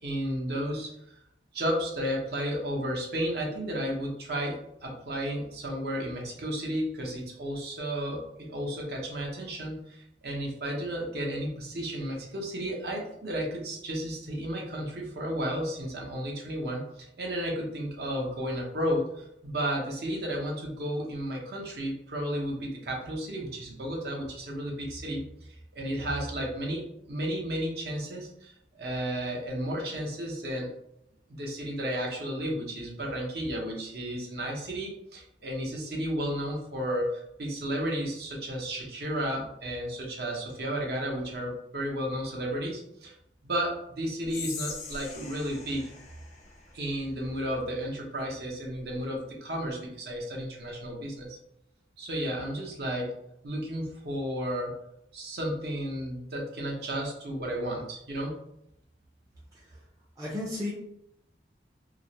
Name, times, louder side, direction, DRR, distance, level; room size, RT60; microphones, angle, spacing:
voice 1, 0.0-1.2 1.5-30.7 31.4-43.2 43.4-45.9 46.7-51.4 52.0-53.1 53.4-54.8 55.1-58.4, equal, 60° right, -1 dB, 0.6 m, -33 dB
Whispering, 44.2-47.5, left 5 dB, 40° left, 0.4 m, -42 dB
voice 2, 59.5-59.8 60.2-60.7, left 2 dB, 20° right, -6 dB, 0.4 m, -34 dB
2.4 x 2.0 x 2.8 m, 0.78 s
head